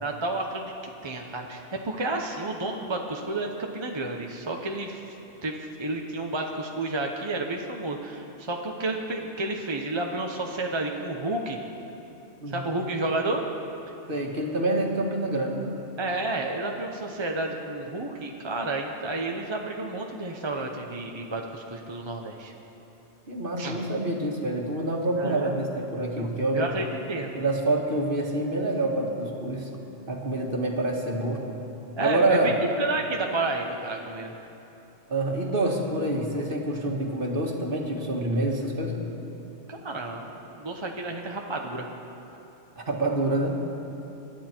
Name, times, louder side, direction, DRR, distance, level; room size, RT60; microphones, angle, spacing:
voice 1, 0.0-0.7 1.0-5.0 5.4-5.5 5.8-11.6 12.5-13.4 16.0-22.5 23.6-23.8 25.2-25.5 26.2-27.3 32.0-32.5 32.8-34.3 39.7-41.9, right 2 dB, 25° right, 1 dB, 0.9 m, -31 dB
voice 2, 12.4-12.8 14.1-15.7 23.3-26.7 27.3-29.7 30.1-31.4 32.0-32.5 35.1-39.0 42.8-43.6, right 2 dB, 50° right, 0 dB, 1.9 m, -27 dB
25.5 x 11.5 x 4.5 m, 3.0 s
omnidirectional pair, 1.2 m